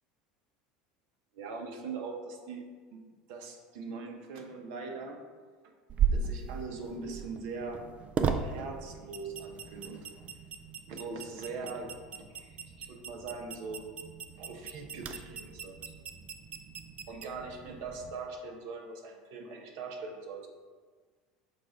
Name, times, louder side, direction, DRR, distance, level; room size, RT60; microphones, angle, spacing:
voice 1, 1.3-2.6 2.9-3.0 3.3-5.2 6.1-7.8 8.2-10.1 10.9-11.9 12.3-13.9 14.4-15.8 17.1-20.5, right 4 dB, 65° right, 3 dB, 1.0 m, -41 dB
sound 1, 5.9-18.1, right 6 dB, 40° right, 0.5 m, -37 dB
7.5 x 2.6 x 5.1 m, 1.5 s
hypercardioid pair, 90°, 4 cm